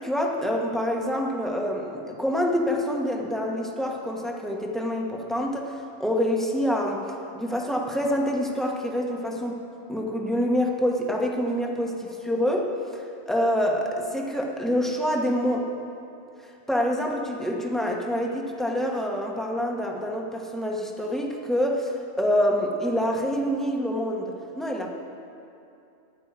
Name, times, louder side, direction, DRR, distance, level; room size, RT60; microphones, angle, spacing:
voice 1, 0.0-7.0 7.3-9.6 9.9-15.7 16.7-24.9, equal, ahead, -1 dB, 1.1 m, -26 dB
14.0 x 10.0 x 4.8 m, 2.6 s
omnidirectional pair, 1.3 m